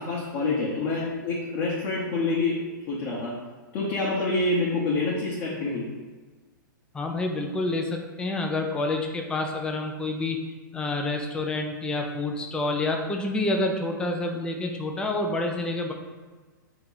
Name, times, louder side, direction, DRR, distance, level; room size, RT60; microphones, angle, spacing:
voice 1, 0.0-2.6 2.9-3.4 3.7-5.9, left 3 dB, 40° left, -5 dB, 0.9 m, -27 dB
voice 2, 6.9-10.4 10.7-15.9, left 2 dB, 10° left, 2 dB, 0.4 m, -28 dB
3.5 x 2.9 x 3.9 m, 1.3 s
hypercardioid pair, 120°, 11 cm